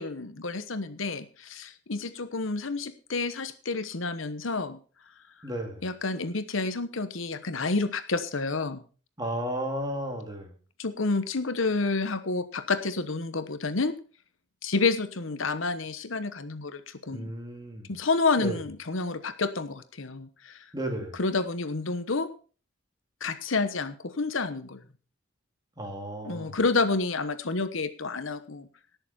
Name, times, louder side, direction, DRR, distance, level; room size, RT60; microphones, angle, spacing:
voice 1, 0.0-4.8 5.8-8.8 10.8-13.9 14.6-17.3 17.9-20.6 21.2-22.3 23.2-24.8 26.2-28.7, left 3 dB, 80° left, 11 dB, 1.1 m, -29 dB
voice 2, 5.4-5.9 9.2-10.5 17.1-17.9 18.4-18.6 20.7-21.2 25.8-26.6, right 1 dB, 20° right, 2 dB, 2.7 m, -34 dB
18.5 x 7.0 x 4.3 m, 0.37 s
head